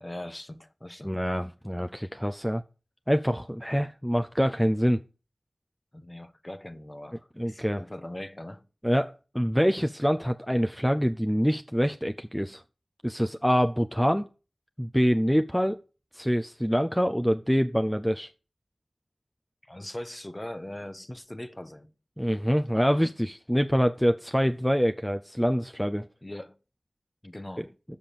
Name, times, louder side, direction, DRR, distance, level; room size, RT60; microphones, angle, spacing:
voice 1, 0.0-1.1 5.9-8.6 19.6-21.9 26.2-26.6 27.2-27.7, left 1 dB, 20° left, 0.9 m, -40 dB
voice 2, 1.0-2.6 3.1-5.0 7.4-7.8 8.8-12.6 13.0-14.2 14.8-15.8 16.1-18.3 22.2-26.1, equal, ahead, 0.5 m, -25 dB
7.2 x 5.9 x 6.8 m
wide cardioid pair, 50°, 0 cm